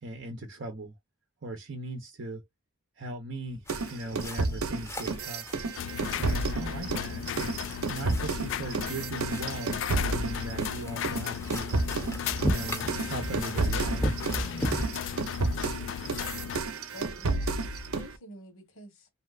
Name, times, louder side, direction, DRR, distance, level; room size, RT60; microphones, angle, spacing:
voice 1, 0.0-0.9 1.4-2.4 3.0-5.6 6.2-11.7 12.4-14.3, right 1 dB, 55° right, 0.6 m, -39 dB
sound 1, 3.7-14.9, equal, 10° left, 0.6 m, -37 dB
sound 2, 3.7-10.8 11.0-18.1, right 3 dB, 85° right, 0.7 m, -31 dB
sound 3, 5.8-16.6, left 8 dB, 55° left, 0.3 m, -36 dB
voice 2, 6.4-6.8 14.4-14.8 16.9-17.5 17.8-19.1, equal, 75° left, 1.2 m, -47 dB
3.2 x 2.7 x 2.3 m
head